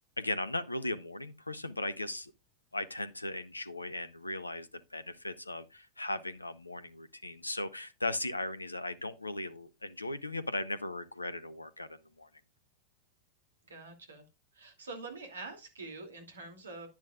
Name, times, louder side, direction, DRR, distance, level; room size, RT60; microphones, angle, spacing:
voice 1, 0.2-2.3 2.7-12.3, left 2 dB, 85° left, 0.6 m, -37 dB
voice 2, 13.7-14.2 14.5-16.9, right 3 dB, 70° right, 2.7 m, -45 dB
10.5 x 10.5 x 2.4 m
figure-of-eight pair, 90°, 0 cm